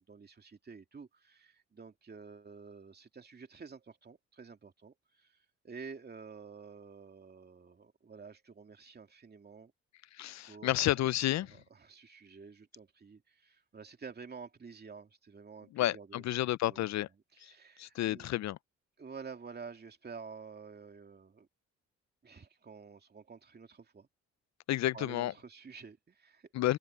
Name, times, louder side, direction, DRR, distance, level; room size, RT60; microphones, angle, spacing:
voice 1, 0.0-5.4 5.6-9.7 10.5-16.2 16.6-16.9 17.3-18.3 19.0-21.5 22.2-24.1 24.9-26.5, right 5 dB, 35° right, 2.7 m, -50 dB
voice 2, 10.1-11.6 15.7-17.1 17.4-17.5 17.8-18.6 24.7-25.3 26.5-26.8, left 14 dB, 65° left, 0.5 m, -31 dB
open air
cardioid pair, 90°, 30 cm